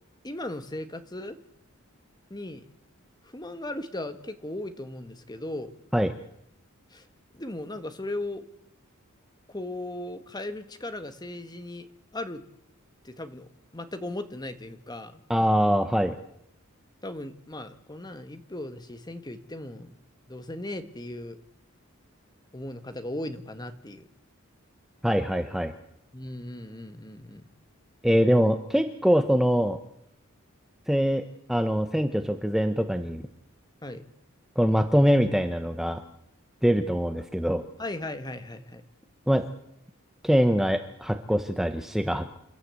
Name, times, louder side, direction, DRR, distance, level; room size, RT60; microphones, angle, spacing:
voice 1, 0.2-1.4 2.3-2.7 3.2-5.7 6.9-7.0 7.3-8.4 9.5-11.9 12.1-12.4 13.0-15.2 17.0-20.0 20.3-21.4 22.5-24.1 26.1-27.4 33.8-34.0 37.8-38.8, left 1 dB, 20° left, 9 dB, 1.5 m, -37 dB
voice 2, 15.3-16.2 25.0-25.7 28.0-29.8 30.9-33.2 34.6-36.0 36.6-37.6 39.3-39.5 40.2-42.4, equal, ahead, 8 dB, 0.9 m, -23 dB
28.5 x 13.0 x 8.3 m, 0.78 s
head